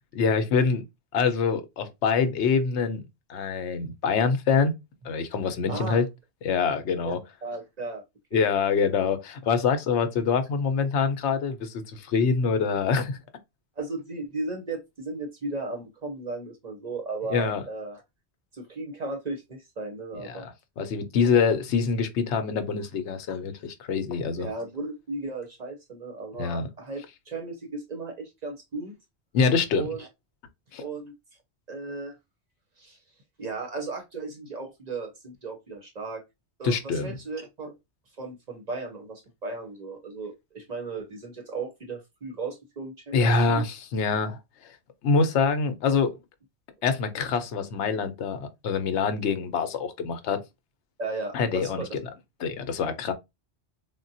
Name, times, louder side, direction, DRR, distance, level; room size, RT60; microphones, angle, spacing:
voice 1, 0.2-0.8 1.1-3.0 3.3-4.7 5.0-6.1 6.4-7.2 8.3-13.2 17.3-17.6 20.1-24.5 26.4-26.7 29.3-29.9 30.7-30.8 36.6-37.2 43.1-44.7 45.0-46.1 46.8-50.4 51.3-52.0 52.4-53.1, left 5 dB, 85° left, 0.9 m, -25 dB
voice 2, 5.6-6.0 7.0-7.1 7.4-8.0 8.3-8.5 13.8-18.0 18.5-20.5 24.4-28.9 29.8-30.1 30.8-31.1 31.7-32.2 32.8-33.0 33.4-36.2 36.6-37.7 38.2-43.6 51.0-52.0, right 3 dB, 45° right, 0.6 m, -35 dB
3.6 x 2.1 x 2.6 m
omnidirectional pair, 1.2 m